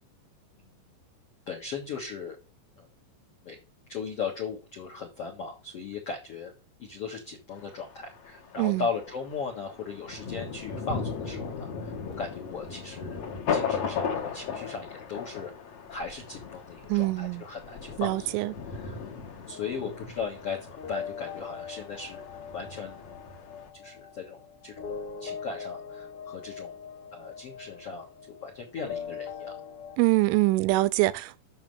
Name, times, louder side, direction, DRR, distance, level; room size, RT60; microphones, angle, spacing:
voice 1, 1.5-2.4 2.8-2.9 3.4-3.6 3.9-6.5 6.8-13.2 13.5-15.5 15.9-18.4 18.7-22.2 22.5-23.0 23.7-24.9 25.2-26.7 27.1-29.5, left 5 dB, 85° left, 1.3 m, -37 dB
Thunder, 7.5-23.7, left 6 dB, 65° left, 1.6 m, -37 dB
voice 2, 16.9-17.4 18.0-18.5 30.0-31.4, right 20 dB, 90° right, 3.1 m, -24 dB
sound 1, 19.5-30.0, left 7 dB, 45° left, 1.8 m, -41 dB
7.2 x 6.6 x 5.4 m
omnidirectional pair, 5.4 m